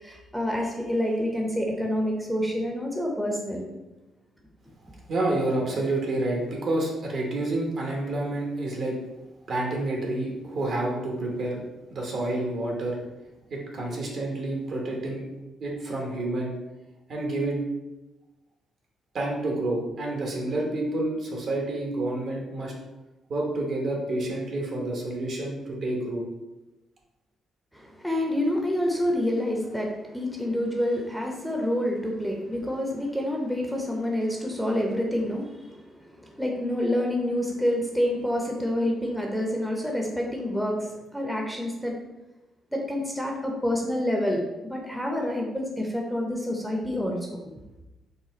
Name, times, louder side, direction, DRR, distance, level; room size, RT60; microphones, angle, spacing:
voice 1, 0.0-3.7 27.7-42.0 42.7-47.4, left 1 dB, ahead, -1 dB, 0.6 m, -28 dB
voice 2, 5.1-9.0 9.5-11.6 11.9-13.0 13.5-15.2 15.6-16.5 17.1-17.6 19.1-22.7 23.3-26.2, right 2 dB, 60° right, -1 dB, 1.0 m, -29 dB
4.1 x 2.2 x 3.9 m, 1.0 s
cardioid pair, 90°, 0 cm